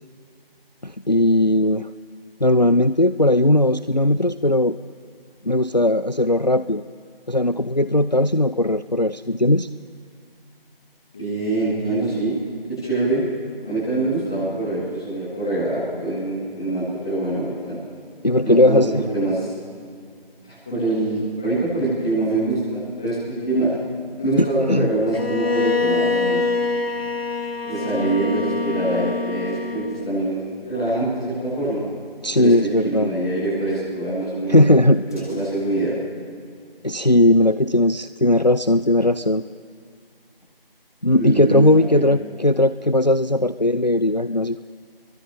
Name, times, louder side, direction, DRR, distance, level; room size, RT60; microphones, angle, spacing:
voice 1, 0.8-1.9 2.4-4.8 5.4-6.8 7.3-9.7 18.2-19.0 24.4-24.9 32.2-33.1 34.5-35.0 36.8-39.4 41.0-44.6, left 1 dB, 45° left, 13 dB, 0.4 m, -18 dB
voice 2, 11.1-12.3 12.8-13.2 13.6-17.7 18.4-18.8 19.1-19.5 20.4-23.6 24.2-26.4 27.6-30.4 30.6-31.8 32.3-32.5 32.8-34.6 34.8-35.9 41.1-42.0, right 2 dB, 5° left, -13 dB, 2.7 m, -24 dB
Bowed string instrument, 25.1-30.2, left 3 dB, 85° left, 1.3 m, -25 dB
29.0 x 22.5 x 3.9 m, 2.2 s
figure-of-eight pair, 170°, 30 cm